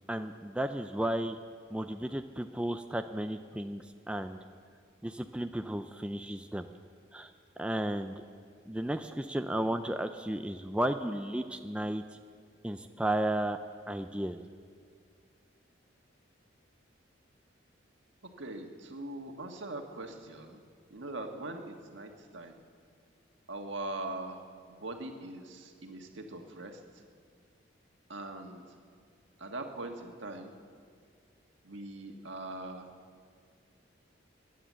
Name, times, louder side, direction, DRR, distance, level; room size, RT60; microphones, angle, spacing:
voice 1, 0.1-1.4 1.7-4.4 5.0-6.7 7.1-7.3 7.6-8.2 8.7-12.0 12.6-13.6 13.9-14.4, right 1 dB, 5° right, 7 dB, 0.4 m, -33 dB
voice 2, 18.4-20.6 20.9-22.6 23.5-27.0 28.1-28.6 29.4-30.5 31.6-32.9, right 2 dB, 75° right, 3 dB, 1.6 m, -41 dB
19.0 x 10.0 x 7.5 m, 2.1 s
head